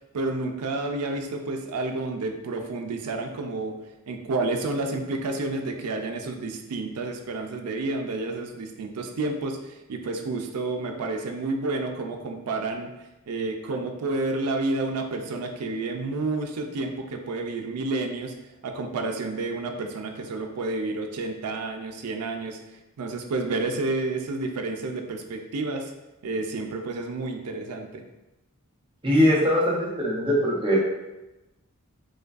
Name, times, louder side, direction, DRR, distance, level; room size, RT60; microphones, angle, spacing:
voice 1, 0.1-3.7 4.1-12.9 13.3-18.3 18.6-22.6 23.0-25.9 26.2-28.0, right 2 dB, 85° right, 5 dB, 0.4 m, -30 dB
voice 2, 29.0-30.8, equal, 25° right, -4 dB, 0.8 m, -21 dB
4.9 x 2.2 x 2.4 m, 1.0 s
head